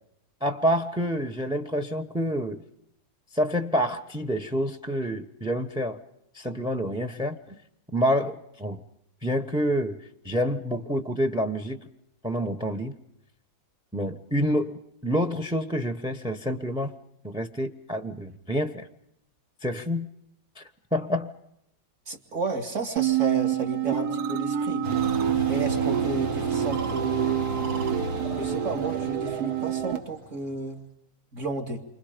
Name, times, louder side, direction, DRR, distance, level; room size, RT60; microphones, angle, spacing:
voice 1, 0.4-2.6 3.3-6.0 6.3-7.6 7.9-8.8 9.2-10.0 10.2-11.8 12.2-12.9 13.9-16.9 17.2-18.9 19.6-20.1 20.6-20.7 20.9-21.3, equal, 5° right, 10 dB, 0.7 m, -27 dB
voice 2, 22.1-24.9 25.5-27.4 28.4-30.8 31.3-31.8, right 3 dB, 40° right, 4 dB, 2.9 m, -32 dB
sound 1, 23.0-30.0, right 10 dB, 60° right, 1.6 m, -27 dB
sound 2, 24.8-30.6, right 1 dB, 85° right, 3.4 m, -34 dB
29.0 x 25.5 x 5.2 m, 0.79 s
omnidirectional pair, 2.0 m